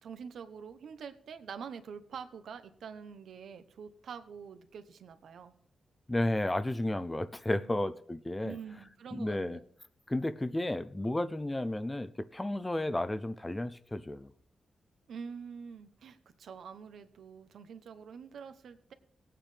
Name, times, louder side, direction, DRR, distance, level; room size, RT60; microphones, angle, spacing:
voice 1, 0.0-5.5 8.4-9.6 15.1-18.9, right 6 dB, 80° right, 9 dB, 1.0 m, -46 dB
voice 2, 6.1-8.6 9.1-9.6 10.1-14.3, left 1 dB, 15° left, 14 dB, 0.5 m, -32 dB
21.0 x 9.0 x 3.3 m, 0.63 s
wide cardioid pair, 120°, 0 cm